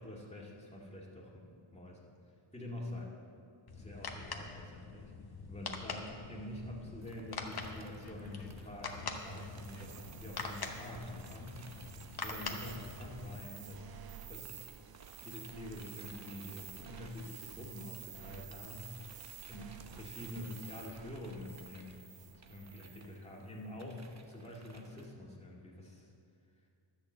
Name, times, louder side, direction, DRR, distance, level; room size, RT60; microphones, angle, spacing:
voice 1, 0.0-2.0 2.5-3.1 3.7-5.1 5.5-14.7 15.2-26.1, left 1 dB, 15° left, -3 dB, 2.2 m, -47 dB
sound 1, 3.7-13.3, left 4 dB, 45° left, 1.1 m, -44 dB
sound 2, 7.0-13.9 14.2-25.1, right 3 dB, 35° right, 0.9 m, -59 dB
sound 3, 9.1-23.2, right 10 dB, 50° right, 0.4 m, -51 dB
12.5 x 6.5 x 7.8 m, 2.4 s
wide cardioid pair, 105°, 50 cm